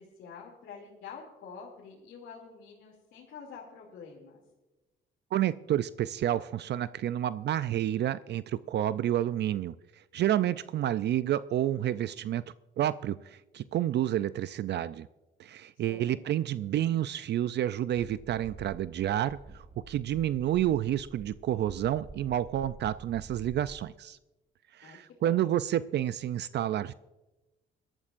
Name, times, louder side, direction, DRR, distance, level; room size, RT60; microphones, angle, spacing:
voice 1, 0.0-4.4 15.7-16.1 24.8-25.0 25.2-25.5, left 5 dB, 80° left, -3 dB, 2.7 m, -47 dB
voice 2, 5.3-12.4 12.8-15.1 15.4-24.2 24.7-26.9, right 12 dB, 60° right, 15 dB, 0.4 m, -29 dB
sound 1, 18.0-23.8, right 3 dB, 30° right, 1.3 m, -49 dB
22.5 x 12.5 x 2.5 m, 1.1 s
cardioid pair, 90°, 20 cm